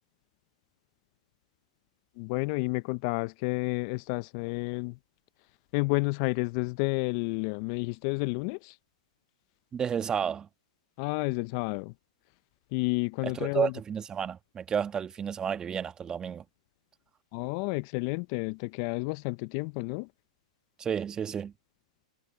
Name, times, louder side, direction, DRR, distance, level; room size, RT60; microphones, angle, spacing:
voice 1, 2.2-5.0 5.7-8.8 11.0-11.9 12.7-13.7 17.3-20.1, left 27 dB, 45° left, 0.5 m, -30 dB
voice 2, 9.7-10.5 13.2-16.4 20.8-21.5, right 7 dB, 20° right, 1.4 m, -31 dB
hypercardioid pair, 125°, 4 cm